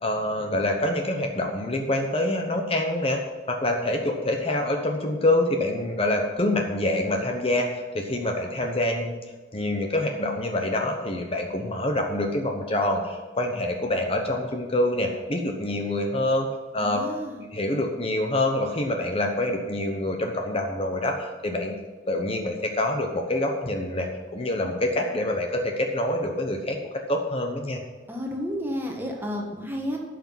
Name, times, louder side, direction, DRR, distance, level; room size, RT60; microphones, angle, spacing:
voice 1, 0.0-3.2 3.5-9.2 9.5-16.5 16.7-17.0 17.5-21.7 22.1-26.8 27.1-27.8, left 1 dB, 35° left, 3 dB, 1.0 m, -26 dB
voice 2, 16.8-17.4 28.1-30.0, equal, 10° right, 0 dB, 1.6 m, -31 dB
11.5 x 6.0 x 7.5 m, 1.3 s
head